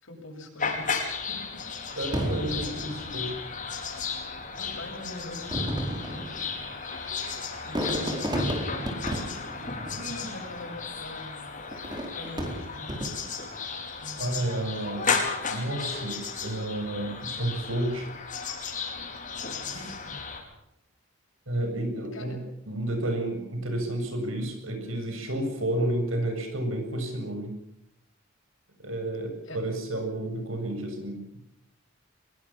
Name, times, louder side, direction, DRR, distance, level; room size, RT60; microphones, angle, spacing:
voice 1, 0.0-1.0 1.3-1.4 1.9-2.1 2.4-2.6 4.6-6.5 7.6-8.7 9.9-11.7 12.1-13.1 14.0-14.8 19.7-20.2 22.1-22.4 29.4-29.6, left 1 dB, 70° left, 2 dB, 7.7 m, -43 dB
sound 1, 0.6-20.4, left 5 dB, 40° left, 5.0 m, -34 dB
voice 2, 2.0-3.3 14.2-15.2 15.5-18.1 21.5-22.4 22.7-27.5 28.8-31.4, right 1 dB, 80° right, 6 dB, 7.4 m, -31 dB
Fireworks, 2.1-3.8 4.6-4.7 5.4-10.7 11.7-13.5 14.1-14.5, right 1 dB, 20° right, 4.3 m, -33 dB
24.0 x 21.5 x 7.4 m, 0.78 s
head